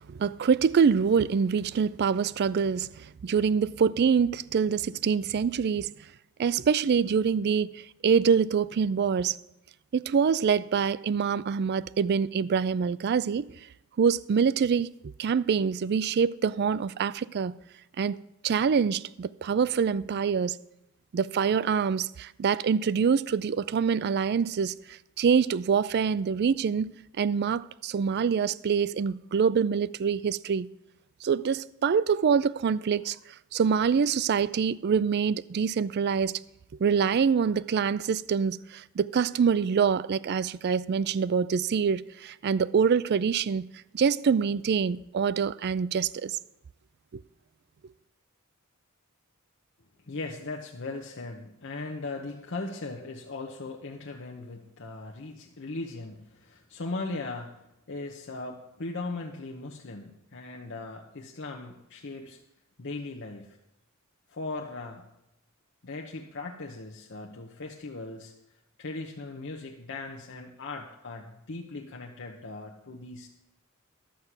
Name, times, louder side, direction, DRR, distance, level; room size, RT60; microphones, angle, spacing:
voice 1, 0.1-5.9 6.4-9.4 9.9-13.5 14.0-14.9 15.2-17.5 18.0-18.2 18.4-20.6 21.1-24.7 25.2-30.7 31.2-33.2 33.5-36.3 36.8-43.7 43.9-46.4, right 6 dB, 50° right, 0.3 m, -25 dB
voice 2, 50.0-62.4 62.8-63.6 64.3-65.0 65.8-68.3 68.8-73.3, left 3 dB, 55° left, 0.9 m, -38 dB
11.5 x 8.1 x 5.9 m
head